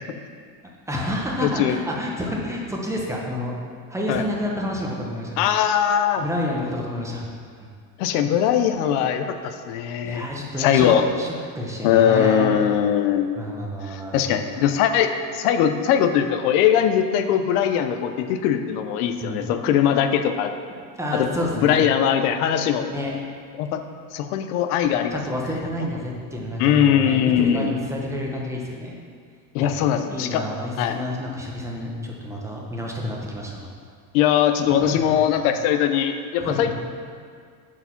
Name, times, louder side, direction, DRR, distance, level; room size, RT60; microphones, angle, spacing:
voice 1, 0.9-3.5 3.9-5.7 6.2-7.2 7.6-7.7 10.0-10.9 11.2-12.4 13.4-14.4 19.1-19.7 21.0-21.9 22.9-23.1 25.1-29.0 29.6-29.8 30.1-33.7 34.8-35.6 36.4-36.7, left 1 dB, 5° right, -2 dB, 0.7 m, -29 dB
voice 2, 1.4-1.8 4.1-4.2 5.4-6.3 8.0-10.2 10.6-11.1 11.8-13.3 13.9-20.5 21.1-21.3 21.6-22.9 23.6-23.8 24.1-25.2 25.8-25.9 26.6-27.7 29.5-30.4 30.8-31.0 34.1-36.7, left 9 dB, 90° left, 8 dB, 0.7 m, -21 dB
8.1 x 4.9 x 5.7 m, 2.1 s
cardioid pair, 155°, 44 cm